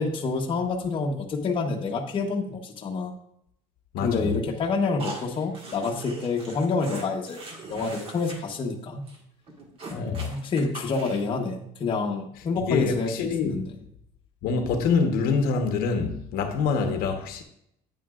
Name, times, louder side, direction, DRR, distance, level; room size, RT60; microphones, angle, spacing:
voice 1, 0.0-3.1 4.0-7.4 7.7-9.0 9.9-13.7, left 4 dB, 30° left, 1.1 m, -28 dB
voice 2, 3.9-4.3 10.0-10.3 12.7-13.6 14.4-17.4, left 5 dB, 70° left, 1.0 m, -25 dB
sound 1, 5.0-8.4 8.6-8.8 9.1-9.2 9.5-11.4, right 2 dB, 35° right, 1.6 m, -41 dB
9.4 x 8.6 x 2.4 m
cardioid pair, 155°, 16 cm